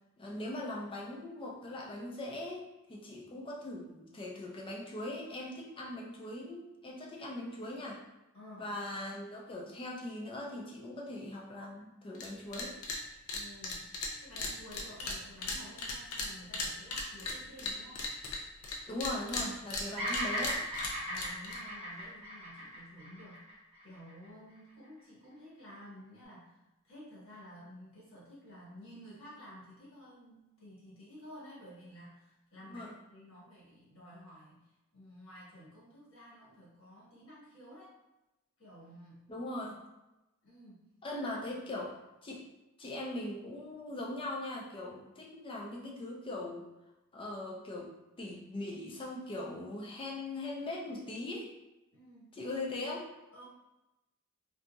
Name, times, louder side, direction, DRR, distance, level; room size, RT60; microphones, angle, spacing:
voice 1, 0.2-8.0 8.6-12.8 18.9-20.6 32.7-32.9 39.3-39.8 41.0-41.9 42.2-42.4 42.8-46.7 47.1-51.5 52.3-53.1, left 1 dB, 25° left, -1 dB, 0.4 m, -40 dB
voice 2, 8.3-8.7 13.3-13.9 14.2-18.1 19.8-20.2 21.0-23.5 23.8-34.7 34.9-37.9 38.6-39.3 40.4-41.2 41.5-41.7 51.9-52.4 53.3-53.5, equal, 65° left, -8 dB, 1.4 m, -52 dB
sound 1, 12.1-12.3 12.5-13.0 13.3-18.8 19.0-21.6, left 3 dB, 85° left, 0.5 m, -37 dB
Bird vocalization bird call bird song, 20.0-24.3, equal, 25° right, 0.8 m, -38 dB
2.7 x 2.6 x 2.3 m, 0.99 s
head